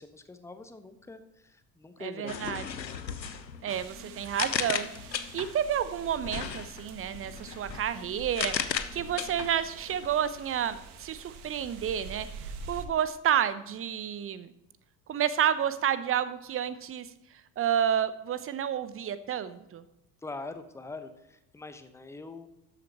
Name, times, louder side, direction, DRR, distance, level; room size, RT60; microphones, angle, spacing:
voice 1, 0.0-2.6 20.2-22.5, left 3 dB, 5° left, 9 dB, 1.0 m, -43 dB
voice 2, 2.0-2.7 3.6-4.9 5.3-14.5 15.1-17.1 17.6-19.8, right 9 dB, 25° right, 14 dB, 0.9 m, -30 dB
sound 1, 2.3-5.7 6.2-10.1, left 7 dB, 85° left, 0.7 m, -36 dB
sound 2, 3.7-12.9, right 4 dB, 60° right, 1.4 m, -46 dB
13.0 x 9.9 x 3.0 m, 0.88 s
figure-of-eight pair, 60°, 49 cm